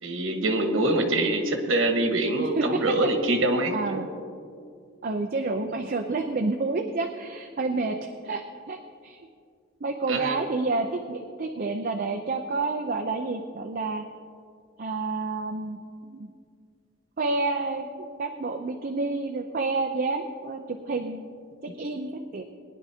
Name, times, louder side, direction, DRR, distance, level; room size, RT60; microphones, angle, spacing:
voice 1, 0.0-4.0 10.1-10.4 21.7-21.8, right 2 dB, 80° right, 5 dB, 1.3 m, -25 dB
voice 2, 2.4-2.8 3.7-4.1 5.0-8.0 8.2-8.8 9.0-9.2 9.8-14.0 14.8-16.3 17.2-21.3 21.8-22.4, right 3 dB, 45° right, 5 dB, 0.5 m, -29 dB
20.5 x 10.5 x 2.8 m, 2.2 s
head